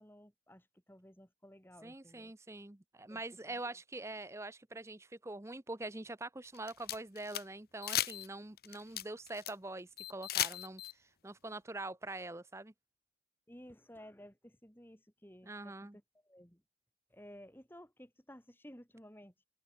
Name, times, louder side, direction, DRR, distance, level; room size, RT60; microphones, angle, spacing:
voice 1, 0.0-2.3 3.1-3.2 3.5-3.6 13.5-16.6 17.1-19.3, equal, 10° left, 4.4 m, -55 dB
voice 2, 1.8-12.7 15.4-16.0, right 2 dB, 15° right, 0.7 m, -44 dB
sound 1, 6.4-7.4 7.8-8.3 8.6-9.5 10.0-10.9, left 12 dB, 55° left, 1.2 m, -36 dB
open air
head